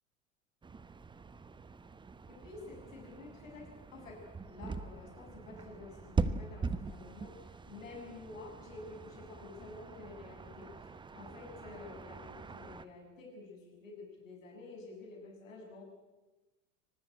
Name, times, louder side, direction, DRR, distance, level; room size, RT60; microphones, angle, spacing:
sound 1, 0.6-12.9, right 4 dB, 10° right, 1.0 m, -42 dB
voice 1, 2.4-4.2 4.5-15.8, left 3 dB, 70° left, 3 dB, 6.9 m, -50 dB
24.5 x 19.0 x 8.7 m, 1.1 s
figure-of-eight pair, 80°, 41 cm